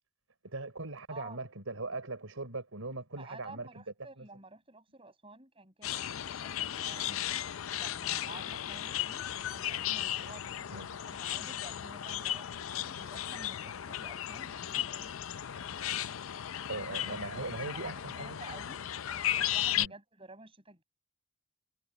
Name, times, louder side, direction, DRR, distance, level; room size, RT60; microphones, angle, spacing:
voice 1, 0.4-3.7 4.2-4.3 7.1-7.2 10.7-10.9 16.0-16.1 16.7-18.4 19.8-19.9, right 2 dB, 90° right, 4.2 m, -40 dB
voice 2, 3.2-7.1 7.8-15.3 17.0-18.8 19.4-20.8, right 3 dB, 25° right, 7.5 m, -51 dB
sound 1, 5.8-19.9, left 11 dB, 85° left, 0.5 m, -35 dB
head